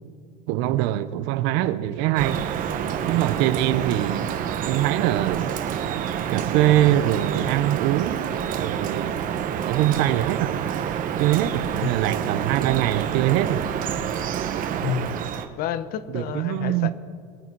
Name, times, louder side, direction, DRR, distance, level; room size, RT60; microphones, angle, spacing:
voice 1, 0.5-2.4 3.0-4.3 4.6-5.5 6.3-8.3 8.6-9.2 9.6-10.5 11.2-13.7 16.1-16.9, right 13 dB, 75° right, 0.8 m, -23 dB
Drip, 2.2-15.5, right 9 dB, 50° right, 1.0 m, -28 dB
voice 2, 14.8-15.3 15.6-16.9, left 9 dB, 55° left, 0.9 m, -29 dB
23.0 x 8.6 x 4.6 m
cardioid pair, 125°, 18 cm